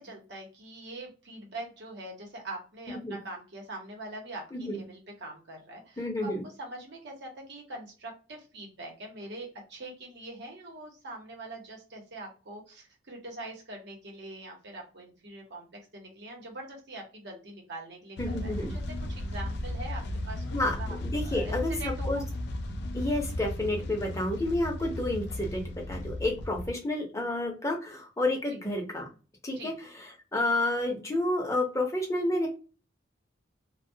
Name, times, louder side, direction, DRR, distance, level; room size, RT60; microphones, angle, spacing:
voice 1, 0.0-18.8 19.1-20.4 20.8-21.0 21.2-22.2 28.5-28.6 29.6-29.7, right 2 dB, 65° right, 0 dB, 0.9 m, -43 dB
voice 2, 2.9-3.2 4.5-4.8 6.0-6.4 18.2-18.8 20.5-22.2 22.9-29.1 29.4-32.5, left 1 dB, 15° left, 1 dB, 0.6 m, -30 dB
sound 1, 18.2-26.7, left 1 dB, 60° left, 0.4 m, -35 dB
2.2 x 2.1 x 2.7 m, 0.34 s
head